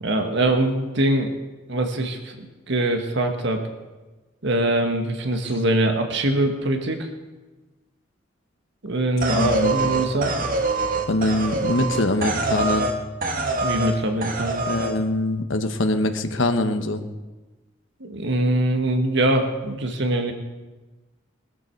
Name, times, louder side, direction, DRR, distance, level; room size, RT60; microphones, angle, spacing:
voice 1, 0.0-1.3 1.7-3.6 4.4-7.1 8.8-10.4 13.6-14.6 18.0-20.3, right 1 dB, 65° right, 5 dB, 1.6 m, -23 dB
sound 1, 9.2-13.0 13.2-13.9 14.2-14.9, right 3 dB, 45° right, 1.7 m, -24 dB
voice 2, 9.3-9.9 11.1-12.9 14.7-17.0, left 2 dB, 75° left, 8 dB, 1.2 m, -23 dB
20.5 x 13.5 x 4.7 m, 1.2 s
head